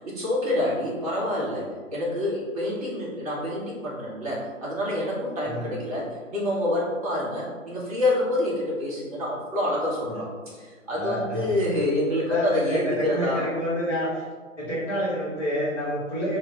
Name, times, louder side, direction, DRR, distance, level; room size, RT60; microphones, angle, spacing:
voice 1, 0.0-13.4, left 1 dB, 25° right, -6 dB, 1.2 m, -27 dB
voice 2, 10.9-11.5 12.3-14.2 14.6-16.4, equal, 5° left, -12 dB, 0.9 m, -28 dB
6.2 x 2.2 x 3.8 m, 1.4 s
figure-of-eight pair, 140°, 40 cm